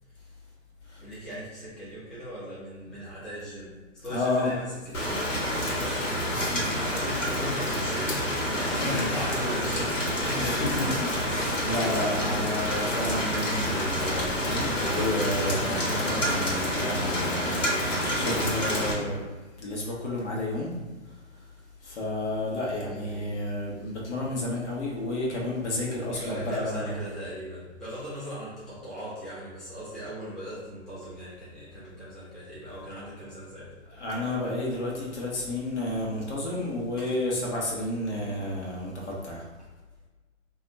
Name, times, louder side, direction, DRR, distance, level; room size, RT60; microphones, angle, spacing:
voice 1, 1.0-11.5 22.9-23.4 26.1-33.7 37.0-37.1, equal, ahead, -12 dB, 0.6 m, -38 dB
voice 2, 4.1-4.5 6.3-6.9 8.8-9.0 10.4-19.2 19.6-20.7 21.8-27.0 33.9-39.4, left 1 dB, 65° left, -4 dB, 1.3 m, -31 dB
Rain, 4.9-18.9, equal, 80° left, 1.4 m, -28 dB
2.7 x 2.4 x 4.0 m, 1.3 s
hypercardioid pair, 135°, 38 cm